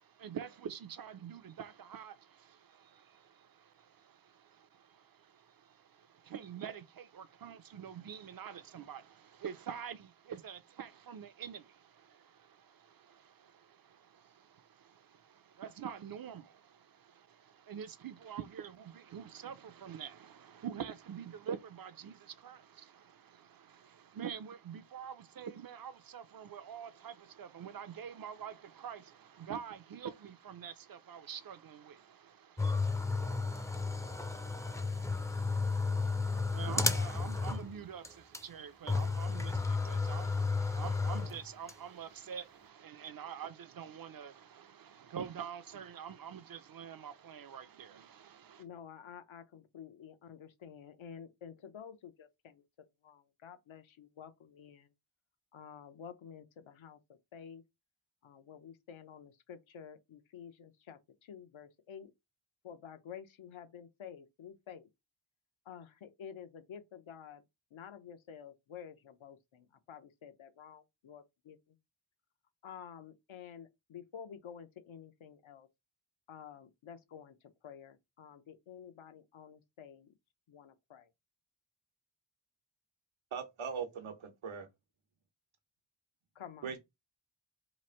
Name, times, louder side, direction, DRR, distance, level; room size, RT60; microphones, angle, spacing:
voice 1, 0.0-48.6, right 8 dB, 50° right, 0.5 m, -46 dB
sound 1, 32.6-37.8 38.0-38.1 38.3-38.4 38.9-41.7, left 4 dB, 5° left, 0.4 m, -33 dB
voice 2, 48.6-52.6 53.0-54.9 55.5-57.0 57.3-57.6 58.2-62.1 62.6-64.9 65.7-67.4 67.7-71.6 72.6-75.7 76.3-77.4 77.6-80.1 80.5-81.1 86.4-86.7, left 8 dB, 80° left, 0.8 m, -50 dB
voice 3, 83.3-84.7 86.6-86.8, right 6 dB, 90° right, 1.0 m, -40 dB
3.1 x 2.5 x 4.3 m
wide cardioid pair, 110°, 47 cm